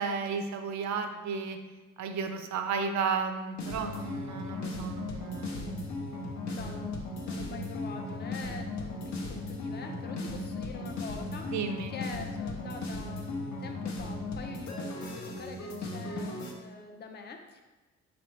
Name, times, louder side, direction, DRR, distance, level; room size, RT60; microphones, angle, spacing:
voice 1, 0.0-1.6 2.0-5.8 7.4-7.5 11.5-11.9, right 5 dB, 65° right, 7 dB, 0.5 m, -33 dB
sound 1, 3.6-16.5, left 2 dB, 65° left, 0.8 m, -37 dB
voice 2, 6.5-7.0 7.2-17.6, left 4 dB, 35° left, 4 dB, 0.5 m, -44 dB
4.4 x 3.0 x 3.1 m, 1.2 s
cardioid pair, 90°, 30 cm